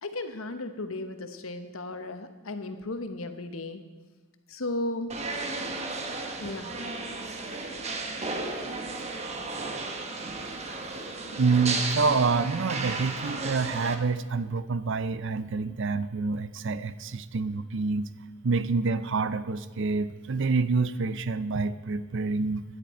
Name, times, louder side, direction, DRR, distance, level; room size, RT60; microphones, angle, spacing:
voice 1, 0.0-3.8 4.5-5.2 6.4-6.7, left 2 dB, 85° left, 8 dB, 1.1 m, -35 dB
sound 1, 5.1-13.9, right 3 dB, 30° right, 1.1 m, -34 dB
voice 2, 11.3-18.1 18.4-22.6, right 4 dB, 65° right, 14 dB, 0.6 m, -27 dB
16.5 x 10.5 x 4.3 m, 1.3 s
head